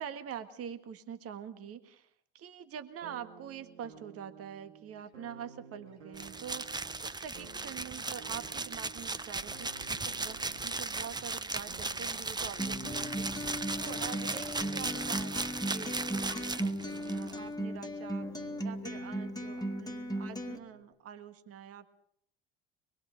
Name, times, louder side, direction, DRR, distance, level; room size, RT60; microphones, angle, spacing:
voice 1, 0.0-21.9, right 8 dB, 45° right, 9 dB, 1.7 m, -45 dB
sound 1, 3.0-20.8, right 6 dB, 85° right, 2.5 m, -54 dB
sound 2, 6.1-17.3, right 3 dB, 10° right, 1.0 m, -37 dB
Acoustic guitar, 12.6-20.6, equal, 10° left, 2.1 m, -37 dB
24.5 x 21.5 x 5.2 m, 0.68 s
hypercardioid pair, 65°, 33 cm